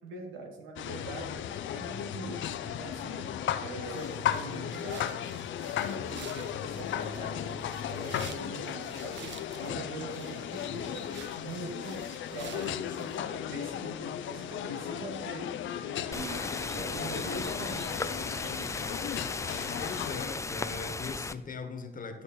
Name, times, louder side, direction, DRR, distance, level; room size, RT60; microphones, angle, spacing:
voice 1, 0.0-1.3 1.7-5.2 5.8-19.0, right 2 dB, 90° right, 2 dB, 2.1 m, -43 dB
sound 1, 0.8-20.2, left 10 dB, 75° left, 0.7 m, -36 dB
sound 2, 3.8-13.2, right 10 dB, 65° right, 0.6 m, -51 dB
sound 3, 16.1-21.3, left 3 dB, 15° left, 0.4 m, -36 dB
voice 2, 19.8-22.2, left 4 dB, 45° left, 7 dB, 1.5 m, -40 dB
11.5 x 6.4 x 4.4 m, 1.0 s
cardioid pair, 90°, 20 cm